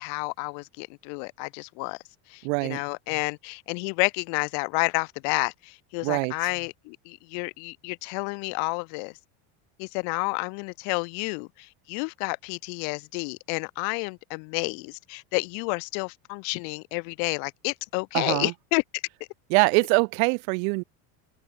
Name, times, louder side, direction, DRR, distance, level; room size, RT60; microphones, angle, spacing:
voice 1, 0.0-2.0 2.3-9.1 9.8-19.0, left 40 dB or more, 65° left, 1.8 m, -30 dB
voice 2, 2.4-2.8 6.0-6.3 18.1-18.5 19.5-20.8, right 36 dB, 70° right, 2.1 m, -23 dB
supercardioid pair, 140°, 43 cm